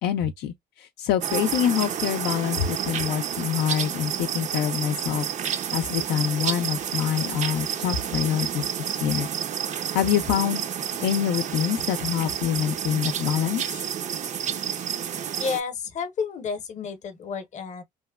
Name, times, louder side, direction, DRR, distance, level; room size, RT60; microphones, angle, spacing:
voice 1, 0.0-9.3 9.9-10.6 11.0-13.6, left 10 dB, 80° left, 0.4 m, -26 dB
sound 1, 1.2-15.6, right 8 dB, 45° right, 0.5 m, -30 dB
voice 2, 15.4-17.8, left 5 dB, 45° left, 0.8 m, -31 dB
2.9 x 2.1 x 2.2 m
cardioid pair, 110°, 17 cm